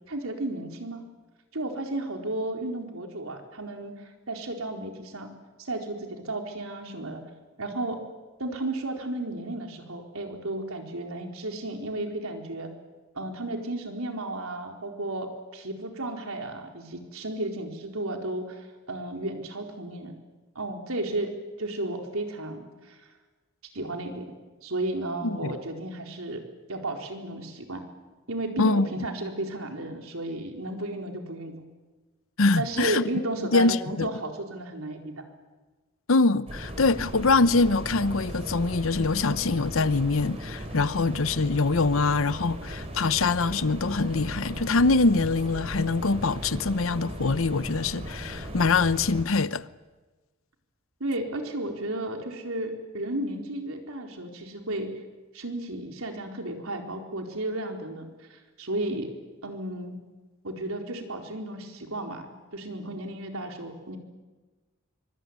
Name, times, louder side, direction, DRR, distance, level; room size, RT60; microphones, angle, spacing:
voice 1, 0.1-1.0 1.5-5.3 5.6-7.2 7.6-8.0 8.4-12.7 13.1-15.3 15.5-20.1 20.5-21.3 21.6-23.0 23.7-24.3 24.6-26.4 26.7-27.8 28.3-31.6 32.5-35.2 51.0-54.9 55.3-59.1 59.4-60.0 60.4-62.3 62.5-64.0, right 1 dB, 90° right, 4.3 m, -33 dB
voice 2, 25.2-25.5 28.6-28.9 32.4-33.0 33.5-34.1 36.1-49.7, left 3 dB, 75° left, 0.9 m, -24 dB
sound 1, 36.5-49.2, equal, 30° right, 4.3 m, -37 dB
25.0 x 24.0 x 9.5 m
head